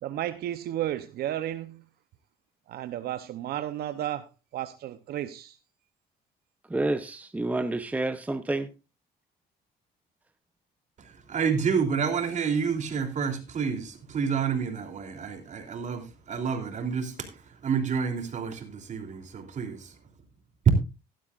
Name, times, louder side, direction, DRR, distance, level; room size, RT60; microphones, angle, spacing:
voice 1, 0.0-1.8 2.7-5.6, right 12 dB, 70° right, 0.8 m, -33 dB
voice 2, 6.7-8.7, right 2 dB, 10° right, 0.8 m, -29 dB
voice 3, 11.0-19.9, right 6 dB, 45° right, 3.2 m, -29 dB
16.0 x 11.5 x 2.5 m
cardioid pair, 110°, 17 cm